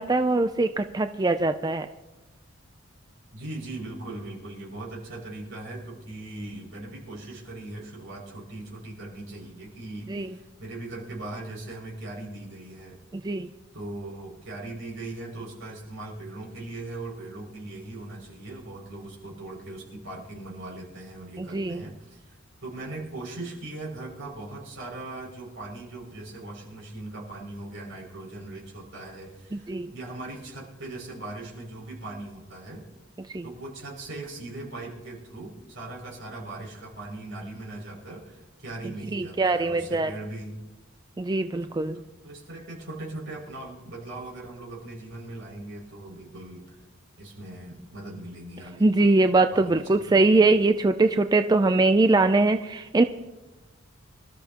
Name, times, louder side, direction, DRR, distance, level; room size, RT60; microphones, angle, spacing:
voice 1, 0.0-1.9 10.1-10.3 13.2-13.5 21.4-21.8 29.7-29.9 33.3-33.4 39.1-40.1 41.2-42.0 48.8-53.0, right 2 dB, 20° right, 8 dB, 0.4 m, -22 dB
voice 2, 3.3-13.0 13.7-22.3 22.6-32.8 33.4-40.6 41.9-46.8 47.2-49.1 49.5-50.4, right 2 dB, 65° right, -3 dB, 6.3 m, -39 dB
26.0 x 13.5 x 2.9 m, 1.1 s
head